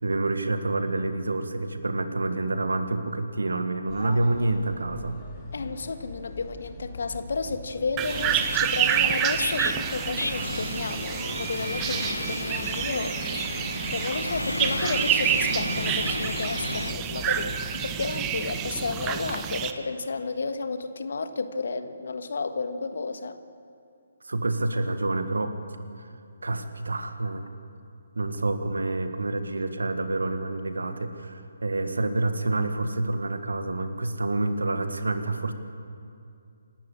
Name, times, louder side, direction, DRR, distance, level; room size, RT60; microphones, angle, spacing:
voice 1, 0.0-5.1 24.2-25.6 26.4-27.5 28.1-35.5, right 2 dB, 70° right, 9 dB, 1.7 m, -28 dB
sound 1, 3.9-19.1, left 4 dB, 20° left, 3.5 m, -43 dB
voice 2, 5.5-13.4 13.9-23.4, left 4 dB, 60° left, 9 dB, 1.5 m, -32 dB
sound 2, 8.0-19.7, right 10 dB, 20° right, 0.9 m, -28 dB
sound 3, 8.1-16.9, left 1 dB, 85° left, 1.1 m, -33 dB
27.0 x 12.5 x 8.6 m, 2.5 s
figure-of-eight pair, 140°, 0 cm